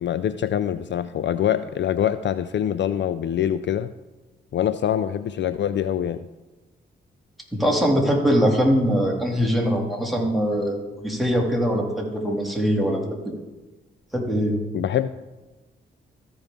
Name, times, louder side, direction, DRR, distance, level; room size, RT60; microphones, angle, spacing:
voice 1, 0.0-3.9 4.5-6.2 14.7-15.1, left 10 dB, 60° left, 13 dB, 0.4 m, -24 dB
voice 2, 7.5-13.4 14.1-14.6, equal, ahead, 0 dB, 2.5 m, -22 dB
14.0 x 5.2 x 3.7 m, 1.1 s
cardioid pair, 60°, 21 cm